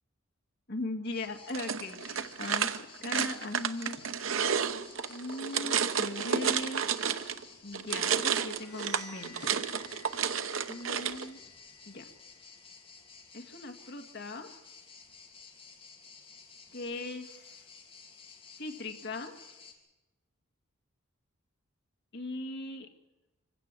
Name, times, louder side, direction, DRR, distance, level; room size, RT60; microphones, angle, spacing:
voice 1, 0.7-4.0 5.1-6.9 7.6-9.6 9.9-10.0 10.7-11.4 11.9-12.1 13.3-14.5 16.7-17.6 18.6-19.3 22.1-22.9, left 2 dB, 55° left, 4 dB, 2.1 m, -39 dB
sound 1, 1.0-19.7, left 5 dB, 30° left, 2.8 m, -54 dB
sound 2, 1.5-7.4 7.7-11.3, right 7 dB, 85° right, 0.9 m, -31 dB
sound 3, 8.3-14.0, left 2 dB, ahead, 6.9 m, -55 dB
25.0 x 16.0 x 7.6 m, 1.1 s
head